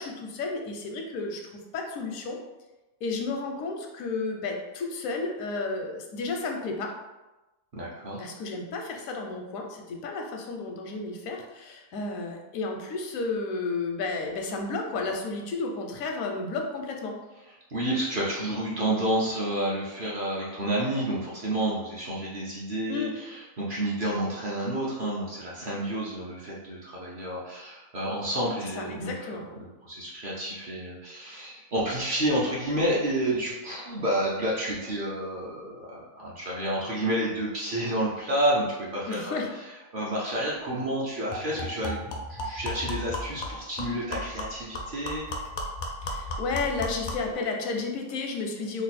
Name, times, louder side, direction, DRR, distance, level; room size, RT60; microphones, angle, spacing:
voice 1, 0.0-2.4 3.0-6.9 8.2-17.1 22.9-23.1 28.8-29.4 39.1-39.5 46.0-48.8, left 3 dB, 85° left, 2 dB, 1.0 m, -32 dB
voice 2, 7.7-8.2 17.7-39.4 39.9-42.0 42.3-45.3, right 1 dB, 45° right, -5 dB, 0.8 m, -30 dB
sound 1, 40.4-40.5 40.8-40.9 41.3-47.3, left 1 dB, 60° left, 0.5 m, -35 dB
3.1 x 2.3 x 4.1 m, 1.1 s
omnidirectional pair, 1.4 m